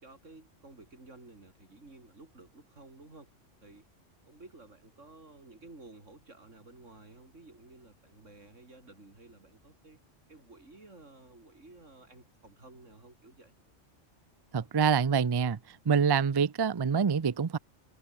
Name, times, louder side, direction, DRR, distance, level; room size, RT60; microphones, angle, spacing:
voice 1, 0.0-3.3 3.6-3.9 4.2-10.0 10.3-13.5, right 2 dB, 90° right, 4.7 m, -53 dB
voice 2, 14.5-15.6 15.9-17.6, right 6 dB, 35° right, 0.4 m, -26 dB
omnidirectional pair, 1.2 m